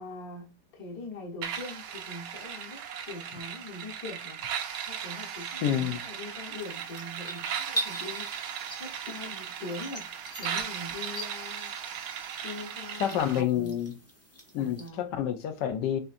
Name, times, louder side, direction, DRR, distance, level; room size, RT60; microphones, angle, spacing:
voice 1, 0.0-4.4 4.9-8.5 8.8-10.1 10.4-11.7 12.4-13.8 14.6-15.1, left 2 dB, 60° left, 1.6 m, -42 dB
sound 1, 1.4-13.4, right 8 dB, 70° right, 1.0 m, -37 dB
voice 2, 5.6-6.0 13.0-13.9 14.5-16.0, left 10 dB, 85° left, 1.3 m, -28 dB
sound 2, 6.6-14.9, right 1 dB, 25° left, 0.3 m, -42 dB
6.7 x 2.6 x 2.5 m
omnidirectional pair, 1.9 m